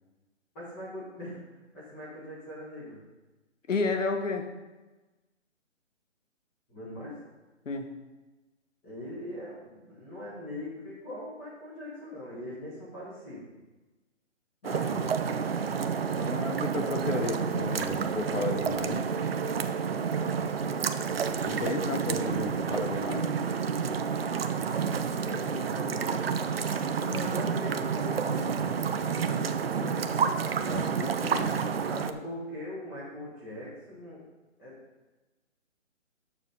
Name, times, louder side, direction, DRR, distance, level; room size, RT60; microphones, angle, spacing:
voice 1, 0.5-1.4 1.7-3.0 6.7-7.2 8.8-13.5 20.1-20.6 25.2-26.3 27.0-30.0 31.9-34.3 34.6-34.8, left 1 dB, 10° left, -7 dB, 1.5 m, -41 dB
voice 2, 3.7-4.5 7.6-7.9 14.6-15.2 16.2-19.1 21.3-23.3 30.7-31.6, left 3 dB, 80° left, 6 dB, 1.3 m, -33 dB
sound 1, 14.6-32.1, right 6 dB, 50° right, 0.5 m, -29 dB
7.2 x 6.2 x 5.3 m, 1.1 s
hypercardioid pair, 165°, 37 cm